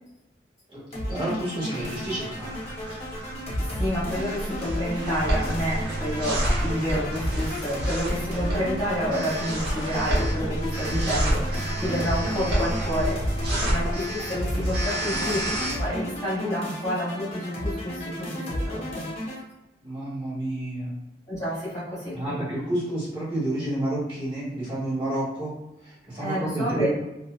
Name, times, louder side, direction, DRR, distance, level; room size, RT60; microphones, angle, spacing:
sound 1, 0.9-19.4, left 1 dB, 35° left, 0.8 m, -32 dB
voice 1, 1.1-2.6 11.8-12.1 13.5-13.8 19.8-20.9 22.1-25.5 25.8-26.9, right 1 dB, 30° right, -9 dB, 1.4 m, -30 dB
sound 2, 1.8-15.7, right 1 dB, 65° right, 0.9 m, -29 dB
voice 2, 3.8-15.5 15.8-18.3 18.6-19.0 21.3-22.4 26.2-26.9, equal, 20° left, -10 dB, 1.2 m, -29 dB
2.8 x 2.3 x 2.2 m, 0.96 s
head